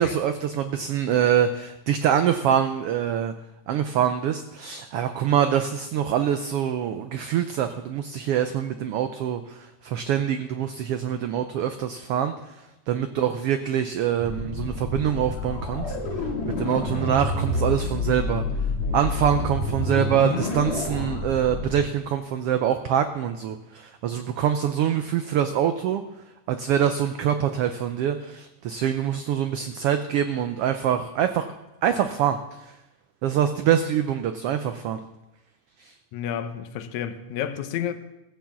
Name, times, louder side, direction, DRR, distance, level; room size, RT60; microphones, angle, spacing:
voice 1, 0.0-3.3 3.7-12.3 12.9-15.9 16.6-18.4 18.9-26.0 26.5-31.5 31.8-32.7 33.2-35.0 35.8-35.9, right 9 dB, 85° right, 1.3 m, -24 dB
sound 1, 14.2-21.8, left 2 dB, 50° left, 3.0 m, -28 dB
voice 2, 36.1-37.9, left 9 dB, 80° left, 2.2 m, -30 dB
15.0 x 7.0 x 7.4 m
omnidirectional pair, 3.3 m